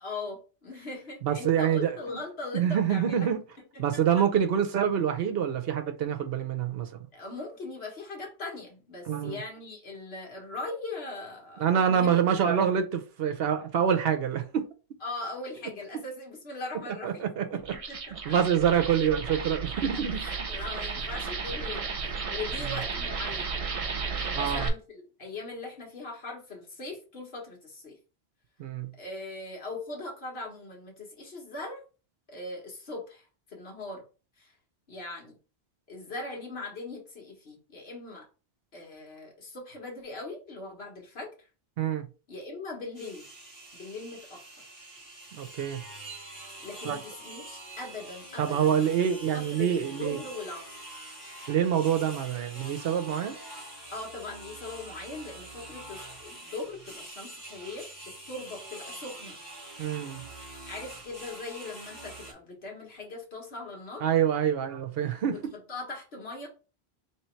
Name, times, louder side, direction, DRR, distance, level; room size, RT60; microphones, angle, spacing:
voice 1, 0.0-3.3 3.7-4.0 7.1-12.2 15.0-18.4 19.9-23.6 24.1-28.0 29.0-31.8 32.3-34.0 34.4-34.5 34.9-35.4 35.9-38.3 38.7-41.5 42.3-43.3 43.7-44.4 46.6-48.8 49.3-50.7 53.9-57.9 58.3-59.4 60.7-64.0 65.3-66.5, left 3 dB, 70° left, 1.7 m, -40 dB
voice 2, 1.2-2.2 2.5-3.4 3.8-7.1 9.1-9.4 11.6-14.7 17.0-17.5 18.3-20.2 24.3-24.7 28.6-28.9 41.8-42.0 45.3-45.8 46.8-47.0 48.4-50.2 51.5-53.4 59.8-60.2 64.0-65.5, right 8 dB, 70° right, 0.9 m, -26 dB
sound 1, 17.6-24.7, right 5 dB, 40° right, 0.6 m, -34 dB
sound 2, 42.9-62.3, right 2 dB, 45° left, 1.8 m, -45 dB
3.3 x 3.0 x 4.4 m
omnidirectional pair, 1.1 m